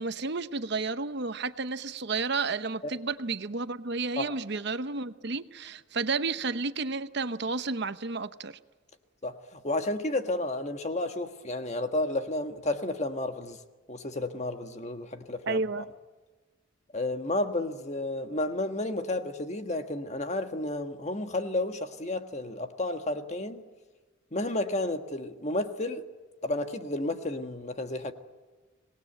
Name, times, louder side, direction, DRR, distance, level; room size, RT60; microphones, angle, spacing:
voice 1, 0.0-8.6 15.5-15.9, right 4 dB, 55° right, 0.9 m, -31 dB
voice 2, 9.2-13.6 13.9-15.8 16.9-23.6 24.3-26.0 26.4-28.1, left 2 dB, 35° left, 1.5 m, -32 dB
26.0 x 19.0 x 9.0 m
head